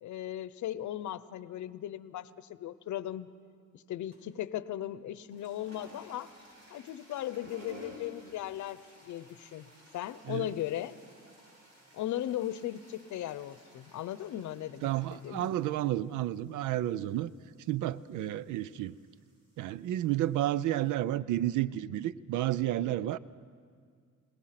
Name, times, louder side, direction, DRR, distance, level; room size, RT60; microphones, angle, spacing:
voice 1, 0.0-3.3 3.7-6.3 6.7-9.7 9.9-10.9 11.9-15.5, left 12 dB, 70° left, 16 dB, 0.8 m, -37 dB
sound 1, 4.1-4.4 5.1-20.9, equal, 65° right, 7.7 m, -56 dB
voice 2, 14.8-17.3 17.7-19.0 19.6-23.2, right 13 dB, 80° right, 19 dB, 0.6 m, -31 dB
28.5 x 18.0 x 5.9 m, 2.1 s
cardioid pair, 90°, 30 cm